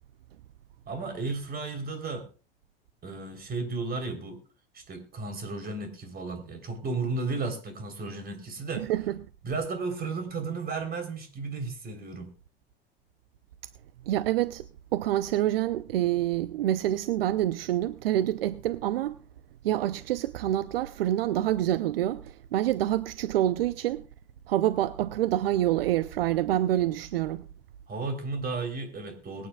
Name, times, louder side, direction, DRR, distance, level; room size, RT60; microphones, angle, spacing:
voice 1, 0.9-2.3 3.0-4.4 4.7-8.9 9.4-12.3 27.9-29.5, right 3 dB, 30° right, 3.6 m, -34 dB
voice 2, 8.8-9.1 14.1-14.6 14.9-19.2 19.6-24.0 24.5-27.4, right 13 dB, 75° right, 0.6 m, -27 dB
22.5 x 9.3 x 2.3 m
hypercardioid pair, 85°, 29 cm